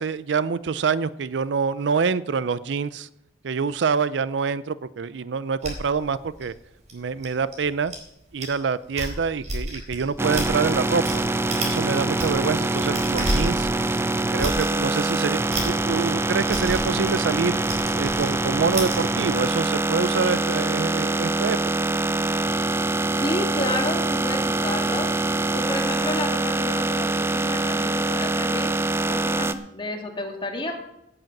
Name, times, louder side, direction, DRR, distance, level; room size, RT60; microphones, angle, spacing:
voice 1, 0.0-3.1 3.4-6.5 6.9-7.9 8.3-11.2 11.6-13.7 14.1-17.6 17.9-21.9, right 5 dB, 75° right, 17 dB, 0.5 m, -26 dB
sound 1, 5.6-8.0 8.4-8.6 8.8-11.2 11.5-11.8 12.1-19.0, right 1 dB, 40° right, 4.1 m, -31 dB
sound 2, 10.2-29.5, right 2 dB, 15° right, 0.6 m, -24 dB
voice 2, 23.1-25.1 25.5-28.8 29.1-30.7, left 1 dB, 30° left, 2 dB, 2.1 m, -30 dB
16.5 x 7.9 x 6.0 m, 0.84 s
head